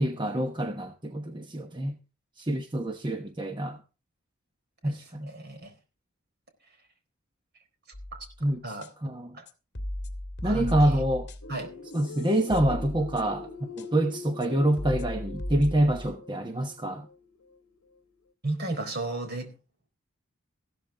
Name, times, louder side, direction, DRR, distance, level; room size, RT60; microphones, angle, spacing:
voice 1, 0.0-2.0 2.4-3.8 4.8-5.3 8.4-8.6 9.0-9.3 10.4-11.3 11.9-13.5 13.8-17.1, right 1 dB, 20° right, 1.1 m, -26 dB
voice 2, 5.2-5.7 8.6-8.9 9.3-9.4 10.4-11.0 11.5-11.7 18.4-19.5, right 2 dB, 50° right, 4.1 m, -34 dB
sound 1, 7.9-8.4 8.8-8.9 9.5-11.6 11.9-13.5 13.8-13.9 14.4-14.5 14.8-16.1, left 1 dB, 55° left, 2.2 m, -36 dB
sound 2, 11.4-18.0, left 4 dB, 90° left, 1.1 m, -44 dB
15.0 x 13.0 x 3.8 m
head